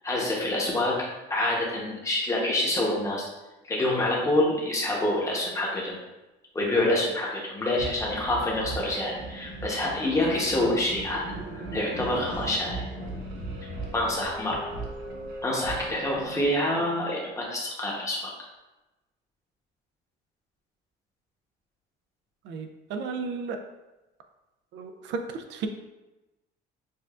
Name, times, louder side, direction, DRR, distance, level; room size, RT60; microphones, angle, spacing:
voice 1, 0.0-3.3 3.6-6.0 6.5-11.2 11.5-12.8 13.9-14.6 15.4-18.3, left 1 dB, 15° left, -3 dB, 0.9 m, -27 dB
sound 1, 7.8-16.5, right 2 dB, 90° right, 0.9 m, -37 dB
voice 2, 22.4-23.6 24.7-25.7, right 4 dB, 70° right, 5 dB, 0.4 m, -34 dB
6.6 x 2.4 x 2.4 m, 1.1 s
cardioid pair, 155°, 19 cm